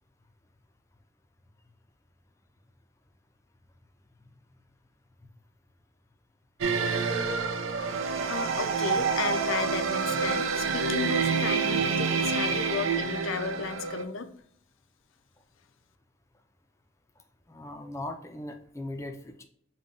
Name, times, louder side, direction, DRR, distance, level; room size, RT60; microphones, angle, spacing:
sound 1, 6.6-14.0, right 5 dB, 90° right, 0.5 m, -28 dB
voice 1, 8.1-14.3, left 5 dB, 85° left, 10 dB, 0.4 m, -34 dB
voice 2, 17.5-19.4, left 1 dB, 15° left, 6 dB, 0.4 m, -39 dB
5.3 x 2.2 x 3.7 m, 0.65 s
head